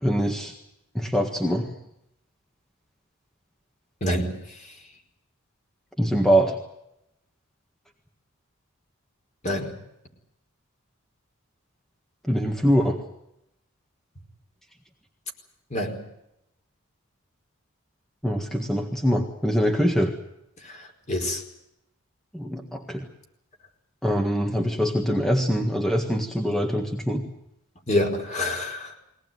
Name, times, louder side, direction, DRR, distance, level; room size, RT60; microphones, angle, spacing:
voice 1, 0.0-0.5 1.0-1.7 6.0-6.6 12.3-13.1 18.2-20.1 22.3-23.1 24.0-27.2, equal, ahead, 2 dB, 1.7 m, -23 dB
voice 2, 4.0-4.7 9.4-9.8 15.7-16.0 20.6-21.4 27.9-28.9, left 1 dB, 35° left, 3 dB, 4.8 m, -27 dB
22.5 x 19.0 x 9.4 m, 0.84 s
head